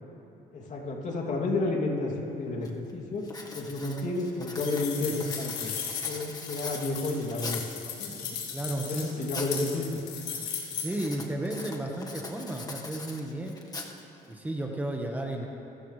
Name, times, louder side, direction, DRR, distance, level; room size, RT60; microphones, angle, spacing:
voice 1, 0.5-5.7 6.1-8.4 8.8-9.9 10.3-10.4, left 2 dB, 45° left, 0 dB, 2.8 m, -31 dB
Writing, 2.1-2.2 2.6-2.9 3.2-7.8 8.4-9.6 9.9-10.3 10.9-14.3, left 3 dB, 20° left, 1.6 m, -42 dB
sound 1, 4.6-11.1, left 7 dB, 85° left, 3.3 m, -37 dB
voice 2, 8.5-9.2 10.7-13.6 14.3-15.5, right 1 dB, 10° right, 1 dB, 1.4 m, -33 dB
26.5 x 14.0 x 3.3 m, 2.8 s
cardioid pair, 110°, 17 cm